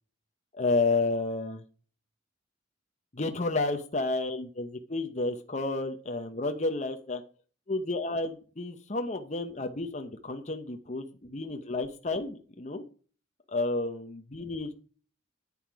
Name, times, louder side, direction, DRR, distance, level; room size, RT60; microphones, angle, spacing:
voice 1, 0.5-1.6 3.1-7.2 7.7-12.8 13.5-14.7, left 3 dB, 35° left, 5 dB, 0.9 m, -31 dB
10.0 x 8.6 x 4.8 m, 0.40 s
head